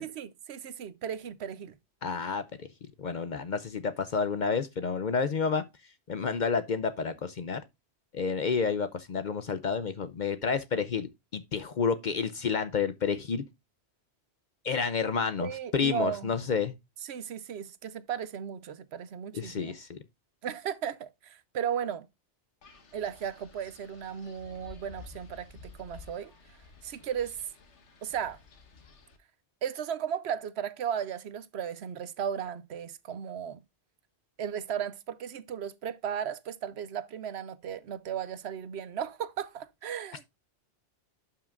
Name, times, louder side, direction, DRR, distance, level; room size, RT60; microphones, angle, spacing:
voice 1, 0.0-1.8 15.4-16.3 17.0-19.7 20.4-22.1 22.9-26.6 26.8-27.4 28.0-28.4 29.6-33.6 34.4-40.3, right 8 dB, 70° right, 0.9 m, -35 dB
voice 2, 2.0-2.7 3.0-5.6 6.1-7.6 8.1-13.4 14.6-16.7 19.3-20.0, left 5 dB, 50° left, 0.6 m, -30 dB
Wind, 22.6-29.2, left 4 dB, 85° left, 1.6 m, -52 dB
12.0 x 5.7 x 2.4 m
omnidirectional pair, 1.2 m